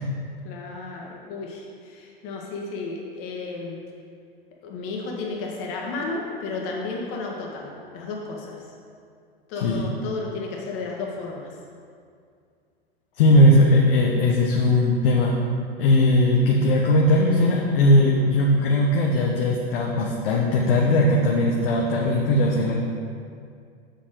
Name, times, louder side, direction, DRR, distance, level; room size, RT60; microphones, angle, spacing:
voice 1, 0.4-3.8 4.6-8.6 9.5-11.5, left 3 dB, 45° left, -1 dB, 1.7 m, -33 dB
voice 2, 13.2-15.3 15.8-22.7, left 1 dB, 70° left, -2 dB, 1.1 m, -19 dB
7.1 x 6.8 x 3.9 m, 2.3 s
hypercardioid pair, 95°, 30 cm